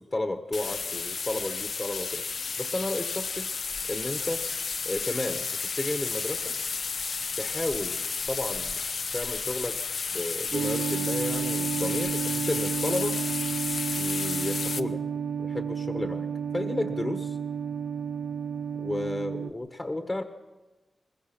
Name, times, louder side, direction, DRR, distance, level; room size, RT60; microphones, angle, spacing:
voice 1, 0.0-2.2 2.6-3.5 3.9-4.4 4.8-5.4 5.8-6.4 7.4-8.8 9.1-9.8 10.1-13.2 14.0-15.0 15.4-16.3 16.5-17.4 18.8-20.2, left 2 dB, 25° left, 7 dB, 1.3 m, -32 dB
sound 1, 0.5-14.8, left 5 dB, 70° left, 0.8 m, -32 dB
sound 2, 10.5-19.5, right 7 dB, 75° right, 0.7 m, -31 dB
21.0 x 20.5 x 6.0 m, 1.2 s
wide cardioid pair, 95°, 0 cm